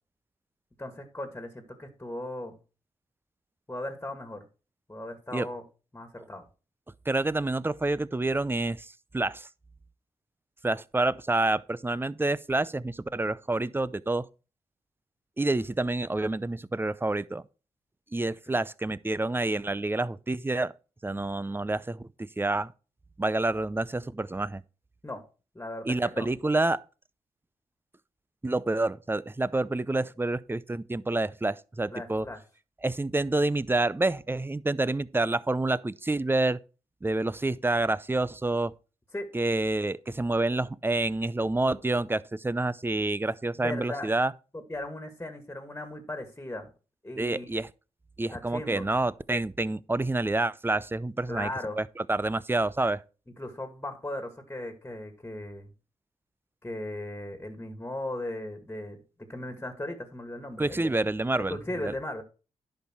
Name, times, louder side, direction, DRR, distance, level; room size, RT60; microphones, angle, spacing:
voice 1, 0.8-2.6 3.7-4.4 4.9-5.6 5.9-6.4 25.0-25.2 25.5-26.3 31.9-32.4 39.1-39.3 43.6-44.1 44.5-46.7 47.0-47.5 48.3-48.9 51.3-51.8 53.4-55.7 56.6-59.0 59.3-60.9 61.3-62.2, left 1 dB, 15° left, 2.1 m, -37 dB
voice 2, 7.1-9.5 10.6-14.3 15.4-17.4 18.1-20.7 21.0-22.7 23.2-24.6 25.9-26.8 28.4-32.3 32.8-36.6 37.0-38.7 39.3-44.3 47.2-47.7 48.2-51.5 51.8-53.0 60.6-61.6 61.8-61.9, right 2 dB, 15° right, 0.6 m, -28 dB
10.5 x 5.6 x 4.6 m
supercardioid pair, 50°, 13 cm